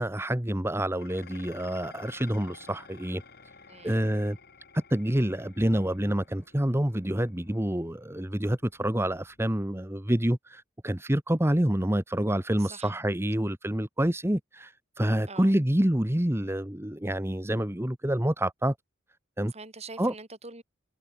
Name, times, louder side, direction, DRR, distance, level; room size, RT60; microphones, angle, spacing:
voice 1, 0.0-3.2 3.8-4.4 4.7-18.7 19.4-19.5 20.0-20.1, right 1 dB, 15° right, 1.3 m, -27 dB
Dishes pots and pans, 1.0-9.8, left 4 dB, 50° left, 5.3 m, -53 dB
voice 2, 3.7-4.1 12.6-12.9 15.3-15.5 19.5-20.6, right 3 dB, 35° right, 5.9 m, -44 dB
head